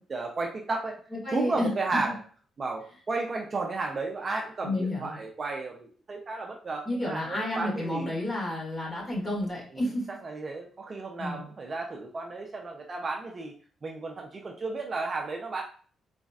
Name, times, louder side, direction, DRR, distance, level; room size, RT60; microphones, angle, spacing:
voice 1, 0.1-1.0 1.3-2.2 2.6-8.1 10.2-13.5 13.8-15.6, right 3 dB, 35° right, 1 dB, 0.6 m, -33 dB
voice 2, 1.2-1.7 4.6-5.2 6.9-10.1 11.2-11.5, left 1 dB, 25° left, -3 dB, 2.1 m, -30 dB
4.0 x 3.8 x 2.4 m, 0.42 s
cardioid pair, 120°, 0 cm